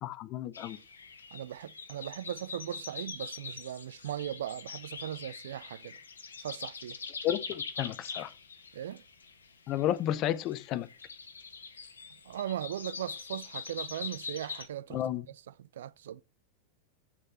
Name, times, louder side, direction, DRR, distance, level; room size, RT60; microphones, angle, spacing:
voice 1, 0.0-0.8 7.2-8.3 9.7-10.9 14.9-15.2, left 12 dB, 35° left, 0.8 m, -32 dB
sound 1, 0.5-14.7, left 5 dB, 70° left, 1.2 m, -43 dB
voice 2, 1.3-6.0 6.4-7.0 8.7-9.0 12.2-15.0 15.3-16.2, right 11 dB, 60° right, 0.4 m, -38 dB
9.5 x 6.5 x 4.2 m
figure-of-eight pair, 90°, 0 cm